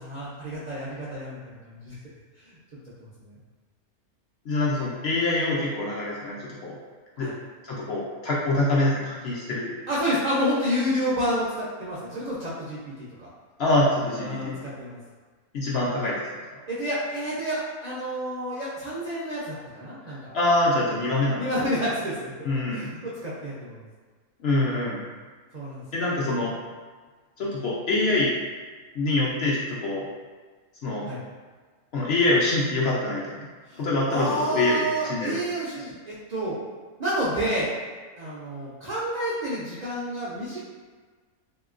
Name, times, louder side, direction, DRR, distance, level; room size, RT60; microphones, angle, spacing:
voice 1, 0.0-1.4 1.7-1.9 2.5-2.6 3.2-3.4 7.2-7.3 9.9-12.9 13.2-13.3 14.1-15.0 16.7-20.3 21.4-23.9 24.9-25.0 25.5-25.8 31.0-31.2 33.7-36.6 37.0-37.7 38.2-40.6, equal, 65° right, -8 dB, 0.4 m, -29 dB
voice 2, 4.5-6.8 7.2-7.3 7.6-9.8 13.6-14.6 15.5-16.2 20.3-21.4 22.4-22.9 24.4-25.0 25.9-26.5 27.4-28.3 28.9-30.1 30.8-31.1 31.9-33.4 33.8-35.4, left 2 dB, 60° left, -5 dB, 0.7 m, -25 dB
3.1 x 2.8 x 2.4 m, 1.5 s
omnidirectional pair, 1.4 m